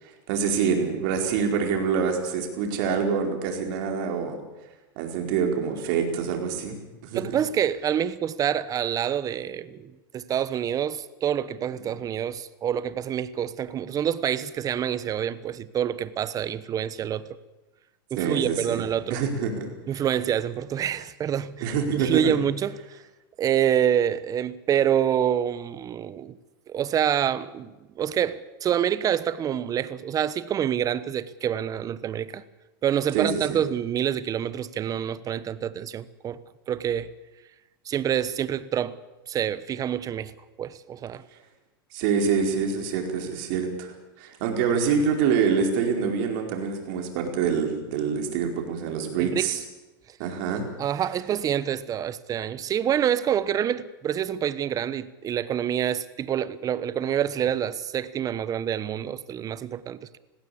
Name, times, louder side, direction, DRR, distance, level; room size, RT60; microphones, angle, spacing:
voice 1, 0.0-4.4 5.0-6.8 7.0-7.2 18.2-18.8 19.1-19.7 21.6-22.2 33.1-33.6 41.9-49.6 50.2-50.7, right 6 dB, 60° right, 4.6 m, -26 dB
voice 2, 7.1-17.3 18.1-19.2 19.9-23.0 23.4-26.4 26.7-32.4 32.8-36.4 36.7-37.1 37.8-39.0 39.3-40.3 40.6-41.2 49.2-49.5 50.8-60.2, right 9 dB, 30° right, 1.0 m, -27 dB
19.5 x 16.5 x 8.6 m
supercardioid pair, 125°, 12 cm